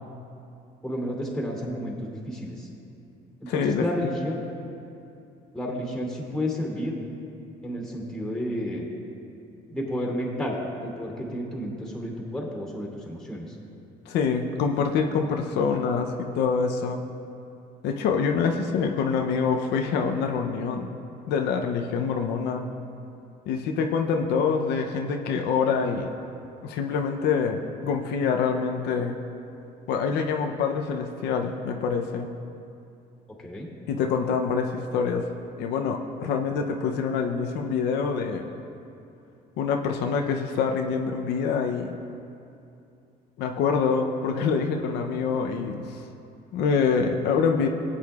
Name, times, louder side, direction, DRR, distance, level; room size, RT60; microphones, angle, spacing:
voice 1, 0.8-2.7 3.4-4.4 5.5-6.9 7.6-8.9 9.7-10.6 10.8-13.5 33.4-33.7, equal, 5° left, -2 dB, 2.5 m, -31 dB
voice 2, 3.5-4.1 14.1-17.0 17.8-20.9 21.3-22.6 23.5-26.1 26.6-29.2 29.9-32.3 33.9-35.3 35.6-38.5 39.6-41.9 43.4-46.0 46.5-47.7, left 5 dB, 85° left, 3 dB, 0.7 m, -25 dB
17.5 x 8.6 x 2.4 m, 2.6 s
cardioid pair, 110°, 17 cm